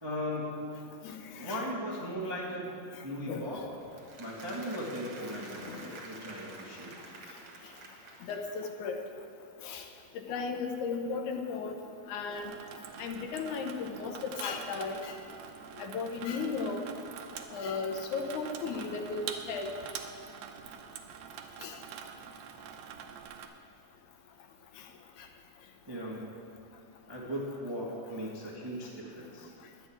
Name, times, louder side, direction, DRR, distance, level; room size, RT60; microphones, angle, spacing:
voice 1, 0.0-0.9 1.3-2.7 3.0-3.6 4.2-7.0 25.9-26.4 27.1-29.5, equal, 15° right, -4 dB, 0.7 m, -38 dB
voice 2, 1.0-1.6 3.3-3.5 5.6-5.8 8.2-9.0 9.6-9.9 10.1-11.8 12.1-12.5 13.0-15.1 15.8-16.8 17.5-19.7 21.6-21.8, left 4 dB, 80° left, 4 dB, 2.3 m, -35 dB
Applause, 3.8-8.8, right 3 dB, 55° right, 2.3 m, -49 dB
Water tap faucet / Sink (filling or washing), 12.3-23.5, right 7 dB, 75° right, 1.8 m, -45 dB
11.0 x 6.3 x 8.4 m, 2.6 s
omnidirectional pair, 3.5 m